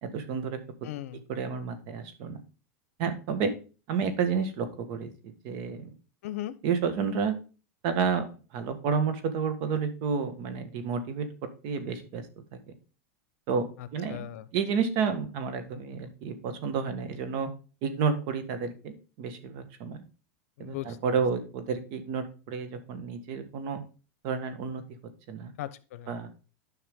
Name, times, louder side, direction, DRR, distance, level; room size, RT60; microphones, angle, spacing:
voice 1, 0.0-0.9 1.3-2.4 3.0-3.5 3.9-5.9 6.6-7.3 7.8-8.3 8.5-11.3 11.6-12.2 13.5-17.5 17.8-20.0 20.6-23.8 24.2-24.8 25.3-25.5 26.1-26.3, right 6 dB, 55° right, 9 dB, 1.7 m, -30 dB
voice 2, 0.8-1.2 6.2-6.6 13.8-14.4 20.6-21.0 25.6-26.1, left 13 dB, 75° left, 14 dB, 0.9 m, -38 dB
11.0 x 5.6 x 3.7 m, 0.34 s
supercardioid pair, 140°, 8 cm